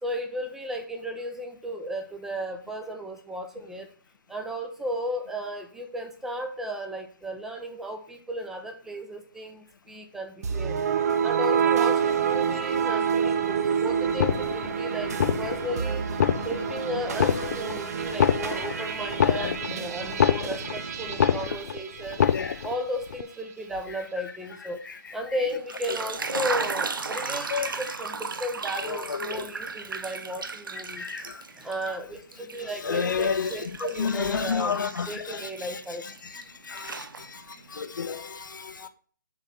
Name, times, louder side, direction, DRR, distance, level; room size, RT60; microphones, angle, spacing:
voice 1, 0.0-3.9 4.3-10.8 11.2-16.0 16.4-22.2 22.6-24.8 25.1-31.0 31.5-34.8 35.0-36.0, equal, 5° right, 0.9 m, -34 dB
sound 1, 10.4-22.7, right 7 dB, 45° right, 0.9 m, -28 dB
sound 2, 14.1-14.8 15.1-15.7 16.1-16.8 17.1-17.8 18.1-20.8 21.1-21.8 22.1-22.8 23.1-23.2, left 8 dB, 45° left, 0.5 m, -25 dB
sound 3, 25.5-31.9 32.3-36.4 36.8-37.6, right 4 dB, 70° right, 0.8 m, -35 dB
voice 2, 32.8-33.5 34.0-35.1 36.7-37.0 37.7-38.9, left 6 dB, 65° left, 1.0 m, -29 dB
7.2 x 4.0 x 5.9 m
figure-of-eight pair, 145°, 11 cm